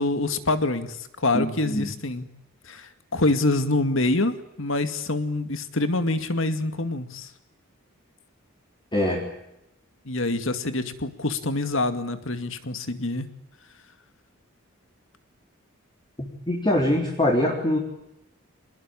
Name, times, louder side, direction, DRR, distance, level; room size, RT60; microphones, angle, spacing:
voice 1, 0.0-2.3 2.7-7.3 10.1-13.3, left 2 dB, 65° left, 10 dB, 2.3 m, -26 dB
voice 2, 1.3-1.9 8.9-9.3 16.2-17.8, left 1 dB, 20° left, -1 dB, 3.9 m, -24 dB
25.5 x 20.5 x 8.9 m, 0.84 s
head